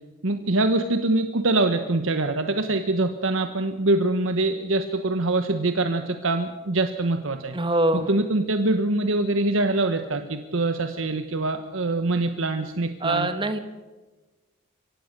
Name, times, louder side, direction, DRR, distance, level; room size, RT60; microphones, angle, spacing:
voice 1, 0.2-7.5 8.1-13.3, right 2 dB, 70° right, 8 dB, 1.2 m, -24 dB
voice 2, 7.5-8.1 13.0-13.6, right 1 dB, 25° right, 9 dB, 1.2 m, -23 dB
24.0 x 17.5 x 6.7 m, 1.2 s
head